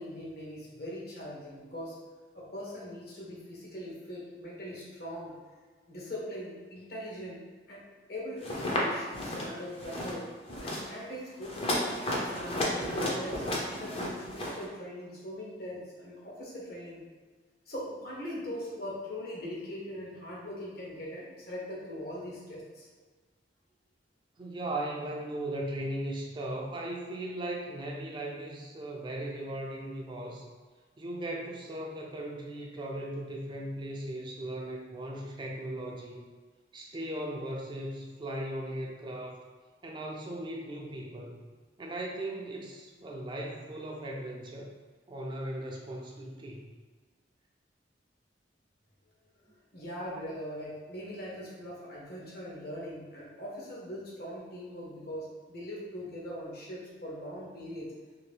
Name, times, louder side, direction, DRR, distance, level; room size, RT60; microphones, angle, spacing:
voice 1, 0.0-2.0 2.3-5.4 5.9-10.3 10.6-17.0 17.7-22.9 49.7-57.9, equal, 60° left, -4 dB, 0.9 m, -41 dB
sound 1, 8.4-8.8 9.1-9.5 9.8-10.2 10.5-10.8 11.4-14.6, left 1 dB, 30° left, 0.5 m, -33 dB
voice 2, 24.4-30.5 31.0-36.2 36.7-39.5 39.8-41.4 41.8-44.7 45.1-46.6, right 1 dB, 25° right, -1 dB, 0.4 m, -38 dB
2.8 x 2.5 x 3.2 m, 1.5 s
head